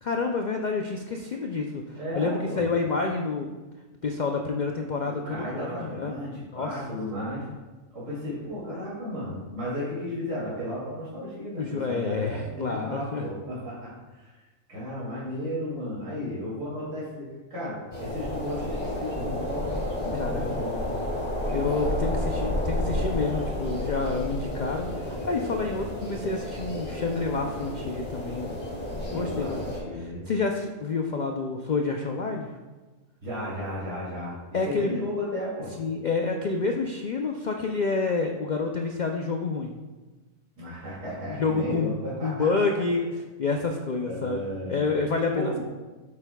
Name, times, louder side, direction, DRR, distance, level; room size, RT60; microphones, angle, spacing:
voice 1, 0.0-3.6 4.0-6.1 6.5-6.7 11.6-13.2 20.1-20.6 21.5-28.6 29.1-29.6 29.9-32.5 34.5-35.0 35.8-39.7 41.3-45.6, left 4 dB, 80° left, 2 dB, 0.4 m, -28 dB
voice 2, 2.0-2.6 5.0-7.4 7.9-14.4 14.7-20.8 21.1-21.8 29.0-30.3 33.2-34.3 34.6-35.7 40.6-42.5 44.0-44.9 45.3-45.6, equal, 60° right, -9 dB, 2.9 m, -34 dB
sound 1, 17.9-29.8, left 1 dB, 40° left, 1.8 m, -31 dB
8.5 x 8.1 x 2.3 m, 1.2 s
omnidirectional pair, 1.5 m